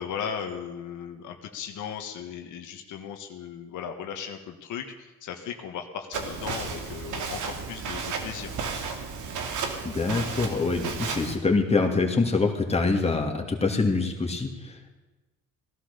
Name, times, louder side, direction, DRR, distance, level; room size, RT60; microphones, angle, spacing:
voice 1, 0.0-8.6, left 8 dB, 85° left, 4 dB, 1.5 m, -37 dB
Walk footsteps, 6.1-11.4, right 5 dB, 75° right, 2.3 m, -33 dB
voice 2, 9.8-14.9, left 3 dB, 20° left, 2 dB, 2.6 m, -25 dB
17.5 x 12.0 x 6.9 m, 1.2 s
cardioid pair, 90°, 30 cm